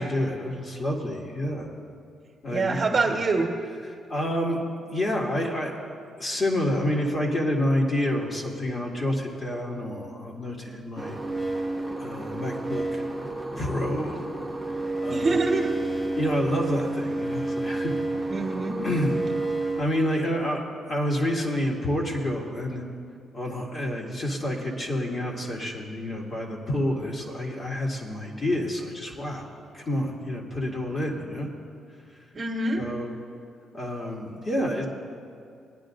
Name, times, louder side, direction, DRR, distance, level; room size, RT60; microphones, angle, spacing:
voice 1, 0.0-1.7 2.4-2.8 4.1-4.6 4.9-5.7 6.2-11.2 12.0-13.0 13.6-14.3 15.0-15.4 16.2-18.0 18.8-19.1 19.8-20.6 20.9-22.8 23.3-31.5 32.8-33.1 33.7-34.8, left 1 dB, 35° left, -3 dB, 2.3 m, -28 dB
voice 2, 2.5-3.5 15.1-15.7 18.3-18.8 32.3-32.8, right 3 dB, 35° right, 1 dB, 1.4 m, -25 dB
sound 1, 11.0-19.8, right 2 dB, 5° left, 1.1 m, -30 dB
19.5 x 9.9 x 2.6 m, 2.3 s
cardioid pair, 90°, 0 cm